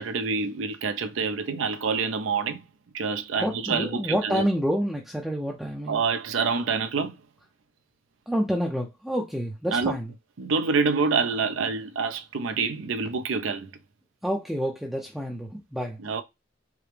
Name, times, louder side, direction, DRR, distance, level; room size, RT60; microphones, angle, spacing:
voice 1, 0.0-2.6 2.9-4.5 5.9-7.1 9.7-10.0 10.4-13.7 16.0-16.2, right 5 dB, 80° right, 0.5 m, -27 dB
voice 2, 3.4-6.0 8.3-10.1 14.2-16.0, equal, ahead, 0.4 m, -28 dB
4.7 x 2.0 x 3.2 m
head